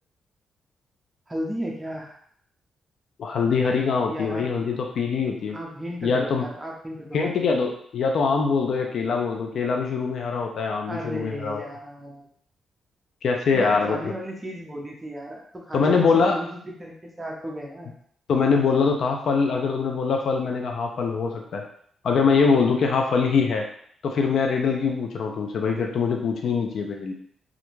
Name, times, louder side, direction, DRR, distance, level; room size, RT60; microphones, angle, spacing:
voice 1, 1.3-2.1 4.1-4.5 5.5-7.5 10.9-12.3 13.5-17.9, equal, 15° right, -1 dB, 0.5 m, -35 dB
voice 2, 3.2-5.6 6.0-6.4 7.1-11.6 13.2-14.1 15.7-16.4 18.3-21.6 22.0-23.6 24.0-27.1, left 5 dB, 65° left, 2 dB, 0.4 m, -23 dB
2.4 x 2.1 x 3.0 m, 0.63 s
cardioid pair, 100°, 0 cm